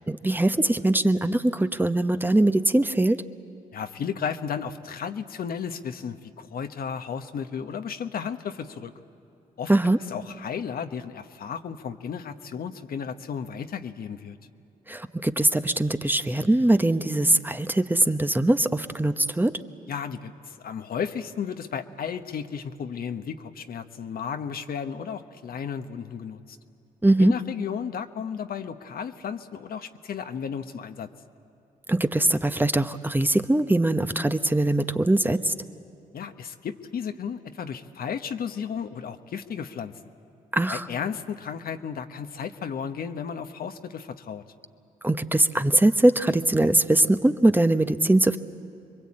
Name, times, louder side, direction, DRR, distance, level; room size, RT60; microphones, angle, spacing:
voice 1, 0.1-3.2 9.7-10.0 14.9-19.5 27.0-27.3 31.9-35.5 40.5-40.9 45.0-48.4, right 1 dB, 10° right, 9 dB, 1.0 m, -21 dB
voice 2, 3.7-8.9 9.6-9.7 10.1-14.4 19.9-26.6 27.2-31.1 36.1-39.9 40.7-44.4, left 7 dB, 60° left, 7 dB, 1.1 m, -34 dB
26.0 x 22.5 x 8.7 m, 2.7 s
supercardioid pair, 55°, 17 cm